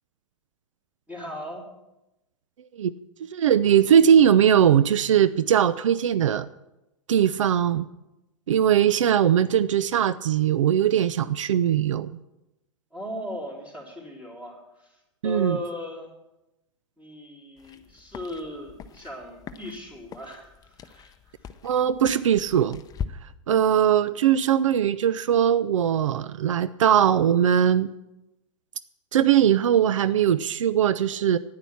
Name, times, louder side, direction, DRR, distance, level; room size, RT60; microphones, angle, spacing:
voice 1, 1.1-1.7 12.9-15.0 15.2-16.1 17.0-21.3, equal, 10° right, -2 dB, 3.6 m, -37 dB
voice 2, 3.3-6.5 7.1-7.9 8.5-12.1 15.2-15.6 21.6-22.8 23.5-27.9 29.1-31.4, right 9 dB, 80° right, 15 dB, 0.5 m, -20 dB
sound 1, 17.6-23.1, left 7 dB, 25° left, 0.7 m, -41 dB
9.9 x 9.6 x 7.1 m, 0.95 s
hypercardioid pair, 110°, 16 cm